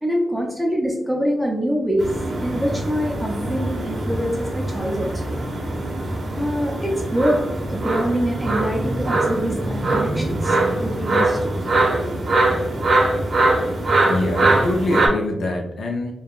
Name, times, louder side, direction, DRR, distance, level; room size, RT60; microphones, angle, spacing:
voice 1, 0.0-2.1 2.4-5.3 6.4-11.5, equal, 5° right, -1 dB, 0.4 m, -25 dB
sound 1, 2.0-15.1, right 2 dB, 60° right, 0.7 m, -22 dB
voice 2, 14.1-16.1, left 2 dB, 75° left, 1 dB, 0.4 m, -24 dB
3.4 x 2.2 x 2.3 m, 0.88 s
wide cardioid pair, 105°, 0 cm